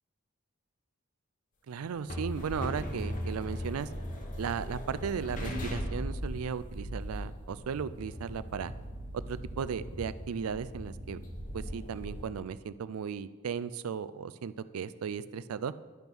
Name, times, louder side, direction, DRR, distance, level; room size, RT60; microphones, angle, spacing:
voice 1, 1.7-3.9 4.3-8.7 9.1-11.2 11.5-15.7, right 6 dB, 90° right, 16 dB, 0.4 m, -36 dB
sound 1, 1.8-12.3, equal, 35° left, 1.0 m, -38 dB
10.5 x 5.4 x 6.1 m, 1.4 s
head